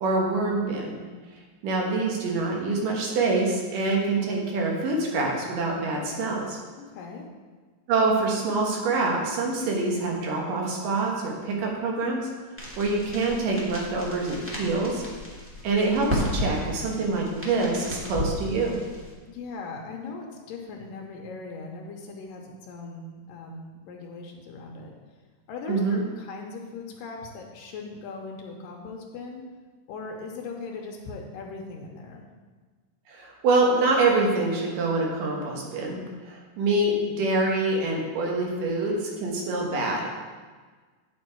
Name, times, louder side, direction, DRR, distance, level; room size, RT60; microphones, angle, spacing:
voice 1, 0.0-1.0 1.6-6.6 7.9-12.3 12.8-15.0 15.6-18.8 25.7-26.0 33.1-40.1, right 3 dB, 80° right, 0 dB, 3.0 m, -25 dB
voice 2, 6.9-7.3 19.3-24.9 25.5-29.4 29.9-32.2, left 4 dB, 85° left, 1 dB, 2.5 m, -39 dB
sound 1, 12.6-19.1, equal, 5° right, 0.9 m, -34 dB
9.4 x 6.5 x 4.5 m, 1.4 s
omnidirectional pair, 3.8 m